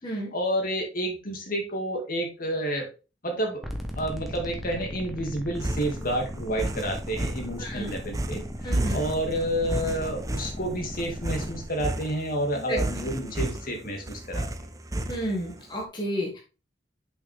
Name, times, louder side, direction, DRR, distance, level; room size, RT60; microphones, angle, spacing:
voice 1, 0.3-2.8 3.2-3.6 4.0-14.7, equal, 50° left, 1 dB, 2.1 m, -30 dB
sound 1, 3.6-11.6, equal, ahead, 1.1 m, -38 dB
sound 2, 5.6-15.6, right 1 dB, 20° right, 0.6 m, -32 dB
voice 2, 7.6-8.0 8.6-9.0 12.5-12.8 15.1-16.4, equal, 25° left, -1 dB, 1.6 m, -31 dB
6.9 x 5.5 x 3.4 m, 0.31 s
head